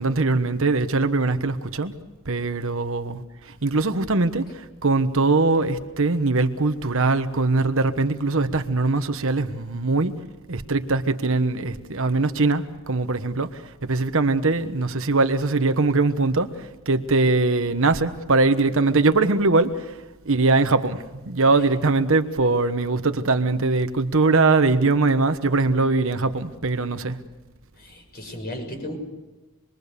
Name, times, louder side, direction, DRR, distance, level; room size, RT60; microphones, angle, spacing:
voice 1, 0.0-1.9 2.2-10.2 10.5-19.9 20.2-27.2, right 3 dB, 60° right, 1.2 m, -22 dB
voice 2, 27.7-29.0, left 1 dB, 45° left, 6.3 m, -35 dB
27.5 x 22.0 x 6.9 m
head